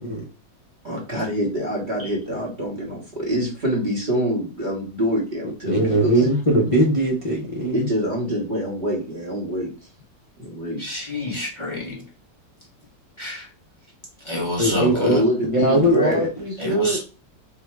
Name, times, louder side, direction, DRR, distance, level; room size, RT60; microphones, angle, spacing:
voice 1, 0.8-6.2 7.7-9.7 10.4-10.8 14.9-16.3, equal, 35° right, -4 dB, 0.9 m, -25 dB
voice 2, 5.6-7.9 14.6-15.2 15.5-17.0, right 1 dB, 40° left, -4 dB, 0.4 m, -20 dB
voice 3, 10.8-12.0 13.2-13.5 14.2-15.2 16.6-17.0, left 2 dB, 20° left, -3 dB, 1.0 m, -28 dB
3.6 x 2.2 x 4.4 m, 0.35 s
omnidirectional pair, 1.8 m